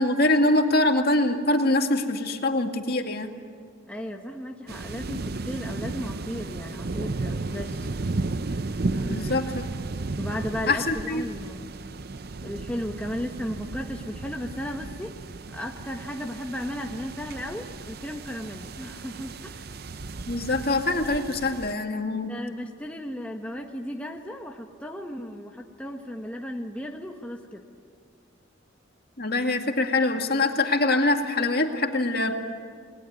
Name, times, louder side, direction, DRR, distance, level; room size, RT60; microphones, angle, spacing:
voice 1, 0.0-3.3 9.0-9.6 10.7-11.2 20.3-22.3 29.2-32.3, left 2 dB, 50° left, 4 dB, 2.2 m, -24 dB
voice 2, 3.9-7.9 8.9-9.5 10.2-11.7 12.4-19.7 22.3-27.6, equal, 5° left, 1 dB, 1.3 m, -35 dB
sound 1, 4.7-21.7, right 3 dB, 50° right, 0.6 m, -34 dB
30.0 x 20.5 x 9.5 m, 2.2 s
head